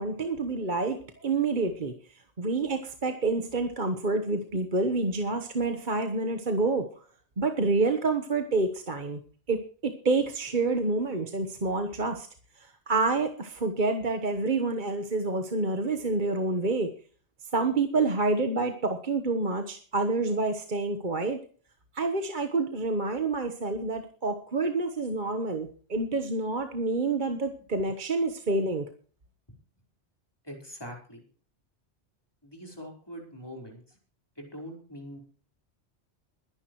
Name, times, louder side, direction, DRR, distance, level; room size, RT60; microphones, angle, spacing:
voice 1, 0.0-1.9 2.4-6.9 7.4-9.2 9.5-12.3 12.9-16.9 17.5-21.4 21.9-28.8, right 3 dB, 45° right, 7 dB, 1.4 m, -28 dB
voice 2, 30.4-31.2 32.4-34.0 34.4-35.2, equal, 20° left, 1 dB, 4.7 m, -43 dB
22.0 x 10.5 x 3.2 m, 0.42 s
omnidirectional pair, 1.2 m